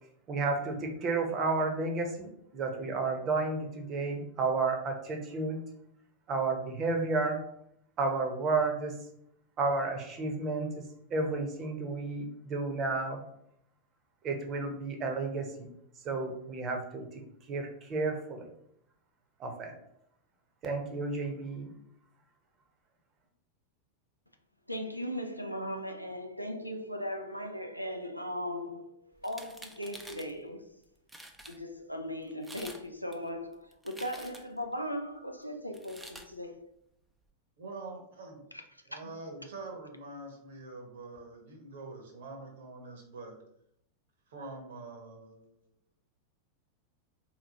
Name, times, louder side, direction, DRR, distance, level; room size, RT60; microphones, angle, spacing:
voice 1, 0.3-5.6 6.3-7.4 8.0-9.0 9.6-10.7 11.1-13.2 14.2-15.7 16.0-17.2 17.5-18.5 19.4-19.7 20.6-21.7, right 3 dB, 30° right, 0.8 m, -32 dB
voice 2, 24.7-30.7 31.5-36.7 38.5-39.1, equal, 90° left, 0.4 m, -38 dB
sound 1, 29.2-30.3 30.8-30.9 31.1-31.6 32.3-32.8 33.1-34.6 35.7-36.3, right 1 dB, 5° right, 0.4 m, -48 dB
voice 3, 37.6-38.4 38.9-43.3 44.3-45.5, right 3 dB, 60° right, 1.0 m, -45 dB
3.9 x 2.9 x 2.8 m
figure-of-eight pair, 90°, 0 cm